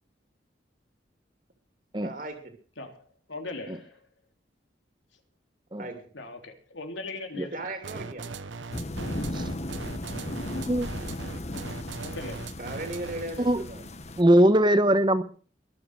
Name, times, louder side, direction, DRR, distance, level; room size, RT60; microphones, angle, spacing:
voice 1, 2.0-2.5 5.8-6.0 7.5-8.3 12.6-13.9, right 2 dB, 45° right, 2.7 m, -37 dB
voice 2, 2.8-4.0 6.1-7.5 9.0-9.2 12.0-12.5, left 2 dB, 85° left, 3.2 m, -39 dB
sound 1, 7.8-13.4, right 4 dB, 90° right, 1.1 m, -39 dB
sound 2, 8.7-14.2, left 1 dB, 35° left, 1.2 m, -36 dB
voice 3, 14.2-15.2, right 1 dB, 25° right, 1.0 m, -20 dB
23.0 x 7.9 x 6.5 m
head